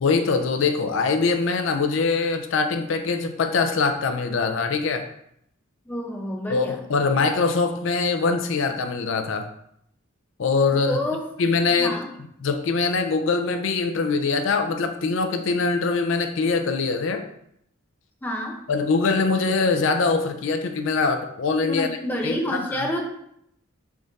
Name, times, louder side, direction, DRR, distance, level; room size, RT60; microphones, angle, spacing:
voice 1, 0.0-5.1 6.5-9.5 10.4-11.0 11.4-12.0 12.4-17.2 18.7-21.9 22.2-22.9, left 4 dB, 65° left, 6 dB, 0.4 m, -23 dB
voice 2, 5.9-6.8 10.7-11.3 11.8-12.1 18.2-18.6 21.6-23.0, equal, 10° left, 1 dB, 0.5 m, -29 dB
3.6 x 2.5 x 4.0 m, 0.73 s
head